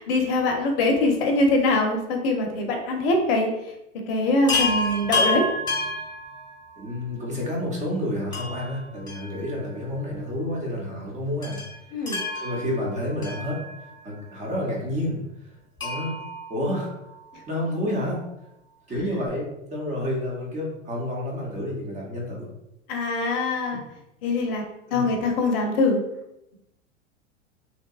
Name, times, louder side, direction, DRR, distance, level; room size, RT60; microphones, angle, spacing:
voice 1, 0.0-3.5 4.1-5.4 11.9-12.2 22.9-23.8 24.2-24.6 24.9-26.0, left 2 dB, 55° left, 3 dB, 0.6 m, -23 dB
Chime, 4.5-6.9 8.3-9.9 10.1-10.2 11.4-14.1 15.8-17.4 19.0-19.1 19.3-19.4, left 2 dB, 10° left, 0.9 m, -30 dB
voice 2, 6.8-11.6 12.3-13.6 14.0-15.5 15.8-16.2 16.5-16.9 17.5-18.2 18.9-22.5 24.9-25.1, left 1 dB, 20° right, -2 dB, 0.7 m, -29 dB
2.8 x 2.1 x 2.3 m, 0.84 s
hypercardioid pair, 95°, 36 cm